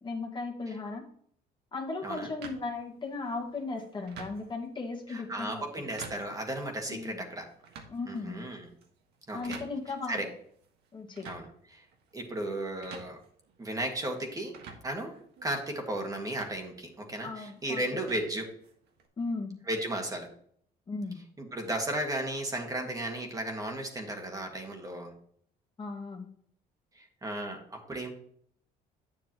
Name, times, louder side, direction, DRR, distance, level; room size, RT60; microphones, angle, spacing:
voice 1, 0.0-1.0 1.7-5.6 6.9-7.2 7.9-8.4 9.3-10.2 10.9-11.3 17.2-17.8 19.2-19.6 20.9-21.2 25.8-26.3, left 3 dB, 30° left, 0 dB, 1.8 m, -36 dB
sound 1, 2.4-19.1, right 5 dB, 80° right, 1.6 m, -52 dB
voice 2, 5.1-7.5 8.1-8.7 9.3-9.6 10.1-10.3 11.2-11.8 12.1-13.2 13.6-14.5 14.8-15.1 15.4-18.5 19.7-20.3 21.4-25.1 26.9-28.1, right 1 dB, 20° right, 2 dB, 1.7 m, -35 dB
8.8 x 7.6 x 3.0 m, 0.63 s
cardioid pair, 110°, 17 cm